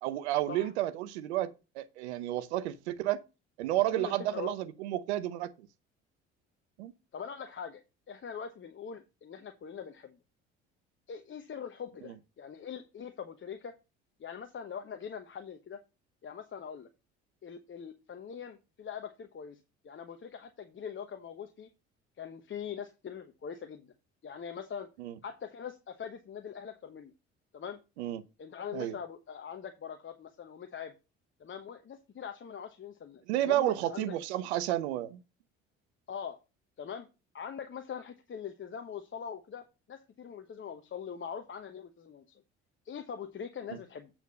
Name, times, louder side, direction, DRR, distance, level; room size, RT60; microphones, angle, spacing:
voice 1, 0.0-3.2 3.6-5.5 6.8-6.9 25.0-25.1 28.0-28.2 28.7-28.9 33.3-35.2, right 14 dB, 80° right, 0.8 m, -31 dB
voice 2, 3.7-4.6 7.1-10.2 11.1-13.7 14.2-15.8 16.2-16.9 17.4-19.6 19.8-21.7 22.2-23.9 24.2-24.9 25.2-27.1 27.5-27.8 28.4-30.9 31.4-34.2 36.1-36.4 36.8-37.1 37.3-42.4 42.8-44.1, left 7 dB, 35° left, 1.0 m, -42 dB
8.2 x 4.4 x 5.4 m
hypercardioid pair, 60°, 33 cm